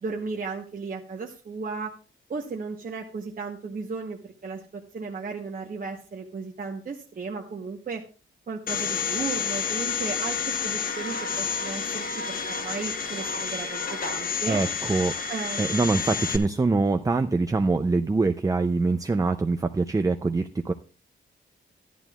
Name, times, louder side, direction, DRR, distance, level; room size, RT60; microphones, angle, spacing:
voice 1, 0.0-1.9 2.3-8.0 8.5-14.6 15.3-15.8, right 4 dB, 40° right, 0 dB, 1.0 m, -35 dB
Domestic sounds home sounds, 8.7-16.4, left 6 dB, 45° left, 1.1 m, -30 dB
voice 2, 14.5-15.1 15.6-20.7, right 3 dB, 15° right, 8 dB, 0.4 m, -24 dB
13.5 x 11.0 x 2.3 m, 0.35 s
wide cardioid pair, 160°, 21 cm